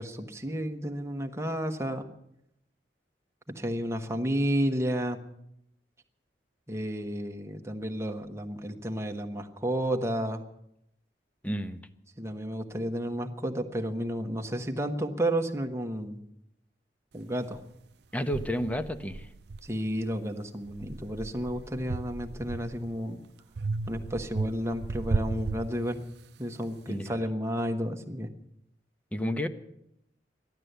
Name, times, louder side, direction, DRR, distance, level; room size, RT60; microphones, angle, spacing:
voice 1, 0.0-2.0 3.5-5.2 6.7-10.4 12.2-16.2 17.1-17.6 19.6-23.2 23.9-26.0 26.4-28.3, equal, 15° right, 4 dB, 1.2 m, -31 dB
voice 2, 11.4-11.8 18.1-19.3 26.9-27.1 29.1-29.5, equal, 10° left, 9 dB, 0.8 m, -31 dB
sound 1, 17.5-17.6 18.3-20.2 20.6-23.0 23.6-26.3, right 3 dB, 65° right, 0.6 m, -35 dB
14.0 x 12.0 x 8.0 m, 0.78 s
head